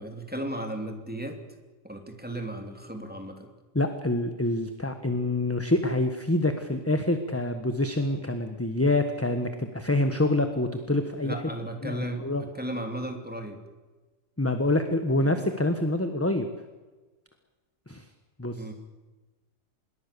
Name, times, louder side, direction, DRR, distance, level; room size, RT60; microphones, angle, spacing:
voice 1, 0.0-1.4 1.8-3.5 11.2-13.6 15.2-15.5 18.5-18.7, right 1 dB, 5° right, 4 dB, 3.0 m, -35 dB
voice 2, 3.7-11.3 11.8-12.4 14.4-16.5 17.9-18.0 18.4-18.6, left 2 dB, 10° left, 7 dB, 1.3 m, -26 dB
26.5 x 21.5 x 7.0 m, 1.2 s
omnidirectional pair, 1.4 m